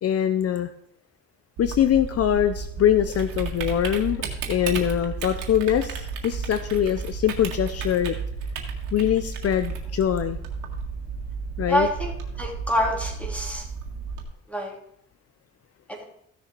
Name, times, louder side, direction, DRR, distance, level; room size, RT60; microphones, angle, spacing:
voice 1, 0.0-0.7 1.6-8.2 8.9-10.4 11.6-11.9, left 10 dB, 55° left, 11 dB, 0.6 m, -23 dB
Typing, 1.6-14.2, right 5 dB, 90° right, 1.9 m, -33 dB
voice 2, 11.7-12.1 12.4-13.6 14.5-14.7 15.9-16.0, equal, 5° left, 0 dB, 3.2 m, -26 dB
15.0 x 6.7 x 4.5 m, 0.72 s
cardioid pair, 90°, 30 cm